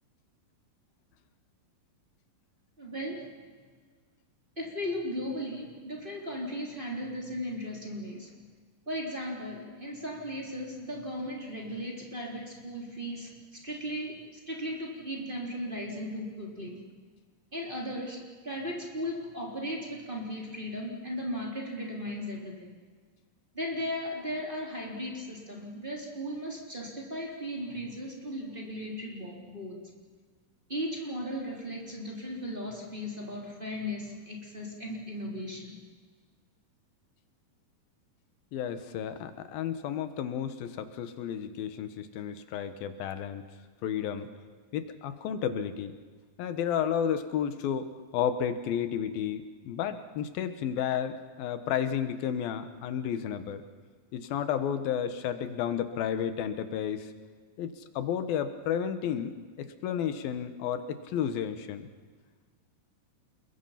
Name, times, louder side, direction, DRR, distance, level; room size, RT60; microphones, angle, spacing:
voice 1, 2.8-3.4 4.6-8.3 8.9-16.8 17.5-22.7 23.5-29.8 30.7-35.8, equal, 15° right, -2 dB, 3.5 m, -36 dB
voice 2, 38.5-43.4 43.8-44.3 44.7-45.9 46.4-53.6 54.1-57.1 57.6-59.3 59.8-61.9, left 8 dB, 85° left, 10 dB, 3.1 m, -32 dB
28.5 x 22.0 x 5.8 m, 1.5 s
omnidirectional pair, 4.1 m